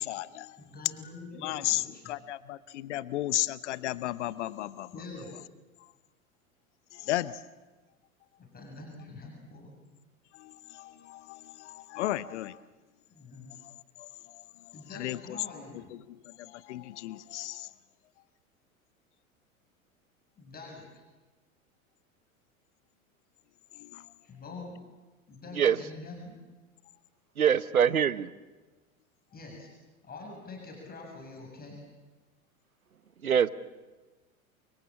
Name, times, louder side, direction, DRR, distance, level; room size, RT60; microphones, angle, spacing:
voice 1, 0.0-0.6 1.4-4.9 6.9-7.4 10.4-12.6 14.0-14.1 14.3-14.4 14.9-15.4 16.1-17.7 23.8-24.0, left 15 dB, 55° left, 17 dB, 0.9 m, -34 dB
voice 2, 0.6-2.2 4.9-5.3 8.4-9.8 13.1-13.5 14.7-15.9 20.4-21.0 24.2-24.8 25.3-26.4 29.3-29.7 30.0-31.8, left 3 dB, 20° left, 0 dB, 7.5 m, -45 dB
voice 3, 27.4-28.3 33.2-33.5, right 8 dB, 80° right, 16 dB, 1.0 m, -24 dB
29.5 x 24.5 x 7.5 m, 1.2 s
figure-of-eight pair, 85°, 42 cm